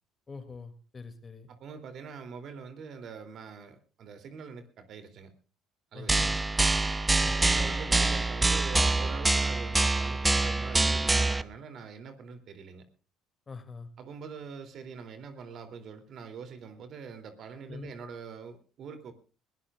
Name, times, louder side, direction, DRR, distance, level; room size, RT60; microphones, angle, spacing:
voice 1, 0.3-1.5 5.9-6.4 7.2-7.4 7.6-7.7 13.5-13.9 17.7-17.9, left 4 dB, 30° left, 10 dB, 2.6 m, -44 dB
voice 2, 1.5-5.3 5.9-6.4 7.3-12.8 14.0-19.1, right 6 dB, 55° right, 8 dB, 3.0 m, -44 dB
sound 1, 6.1-11.4, right 2 dB, 15° right, 0.8 m, -25 dB
21.0 x 17.5 x 2.5 m, 0.35 s
supercardioid pair, 75°, 0 cm